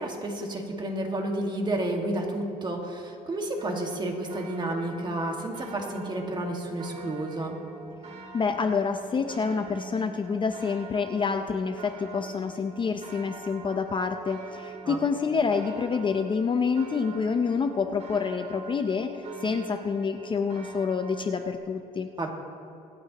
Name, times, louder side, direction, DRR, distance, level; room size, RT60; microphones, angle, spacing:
voice 1, 0.0-7.6 14.8-15.0 22.2-22.3, right 1 dB, 25° right, 1 dB, 1.9 m, -31 dB
sound 1, 3.6-21.5, right 3 dB, 40° right, 2.3 m, -43 dB
voice 2, 8.3-19.1 19.4-22.1, left 5 dB, 30° left, 7 dB, 0.5 m, -27 dB
26.0 x 8.6 x 3.0 m, 2.5 s
cardioid pair, 110°, 17 cm